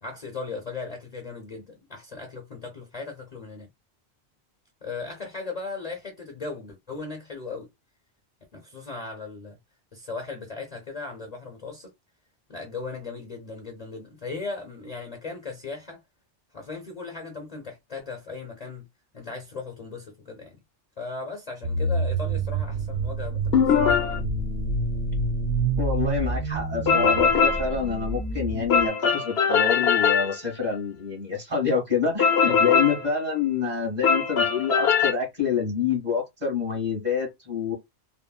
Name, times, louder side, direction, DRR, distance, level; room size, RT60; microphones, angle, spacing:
voice 1, 0.0-3.7 4.8-7.7 8.5-9.6 9.9-11.9 12.5-16.0 16.5-18.8 19.1-20.6 21.0-24.2, left 4 dB, 40° left, 0.7 m, -37 dB
sound 1, 21.6-28.9, right 2 dB, 90° right, 1.1 m, -28 dB
sound 2, 23.5-24.2 26.9-27.7 28.7-30.3 32.2-33.0 34.0-35.1, left 6 dB, 70° left, 0.8 m, -21 dB
voice 2, 25.8-37.7, left 6 dB, 40° right, 1.8 m, -27 dB
3.6 x 2.0 x 2.3 m
omnidirectional pair, 1.2 m